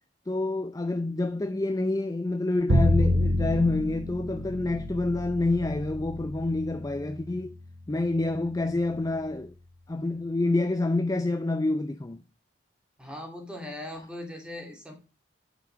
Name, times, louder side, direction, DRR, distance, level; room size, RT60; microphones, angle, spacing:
voice 1, 0.3-7.6 7.9-9.5 9.9-12.2, left 2 dB, 20° left, 0.4 m, -27 dB
Bowed string instrument, 2.7-8.8, left 1 dB, 90° right, 1.0 m, -28 dB
voice 2, 13.0-14.9, left 1 dB, 5° right, 2.5 m, -39 dB
8.5 x 6.1 x 4.6 m
head